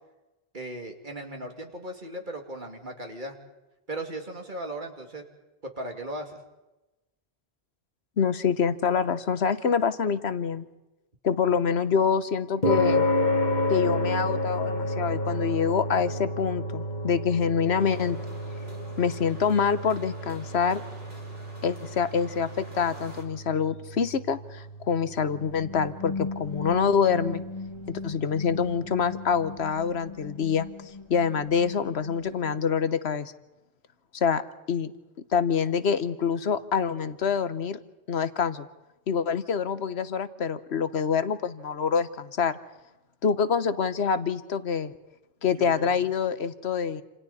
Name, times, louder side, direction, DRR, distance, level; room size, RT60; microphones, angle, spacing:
voice 1, 0.5-3.4 3.9-5.2 5.6-6.4 45.6-46.0, right 1 dB, 50° right, 3 dB, 2.7 m, -37 dB
voice 2, 8.2-10.6 11.2-13.1 13.7-18.2 19.0-20.8 21.6-27.4 27.9-33.3 34.1-34.4 34.7-34.9 35.3-37.8 38.1-38.7 39.1-42.6 43.2-44.9 45.4-47.0, left 6 dB, 85° left, 12 dB, 1.3 m, -26 dB
sound 1, 12.6-29.1, left 1 dB, 45° left, 1.7 m, -31 dB
sound 2, 17.8-23.2, right 1 dB, 65° right, 4.8 m, -48 dB
sound 3, 25.3-32.9, left 3 dB, 25° left, 1.7 m, -39 dB
28.5 x 27.5 x 4.2 m, 1.0 s
omnidirectional pair, 1.1 m